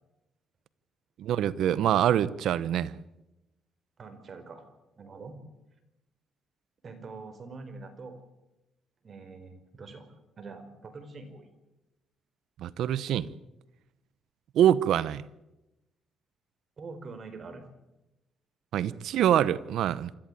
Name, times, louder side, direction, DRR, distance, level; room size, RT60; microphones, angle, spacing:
voice 1, 1.2-2.9 12.6-13.3 14.5-15.2 18.7-20.1, right 10 dB, 80° right, 18 dB, 0.8 m, -25 dB
voice 2, 4.0-4.6 5.0-5.4 6.8-8.2 9.0-10.1 10.4-11.5 16.8-17.6, right 4 dB, 45° right, 9 dB, 4.4 m, -44 dB
26.5 x 13.5 x 9.1 m, 0.97 s
cardioid pair, 90°, 0 cm